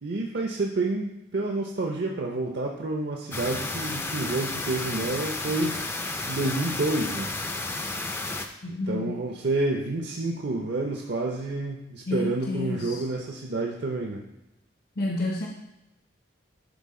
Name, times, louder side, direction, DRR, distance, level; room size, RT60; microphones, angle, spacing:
voice 1, 0.0-5.9 6.3-7.3 8.7-14.2, right 2 dB, 60° right, 1 dB, 0.6 m, -29 dB
sound 1, 3.3-8.5, left 2 dB, 10° left, 0.4 m, -32 dB
voice 2, 8.6-9.1 12.1-13.0 15.0-15.5, left 2 dB, 50° left, 0 dB, 0.6 m, -30 dB
11.0 x 3.7 x 3.7 m, 0.90 s
head